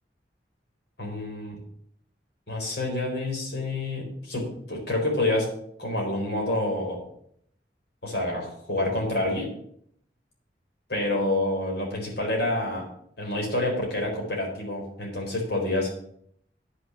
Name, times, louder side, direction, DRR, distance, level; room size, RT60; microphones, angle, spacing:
voice 1, 1.0-1.6 2.5-5.5 5.8-7.0 8.0-9.5 10.9-12.9 13.2-15.9, left 1 dB, 65° left, -1 dB, 4.2 m, -28 dB
9.6 x 6.3 x 7.5 m, 0.68 s
head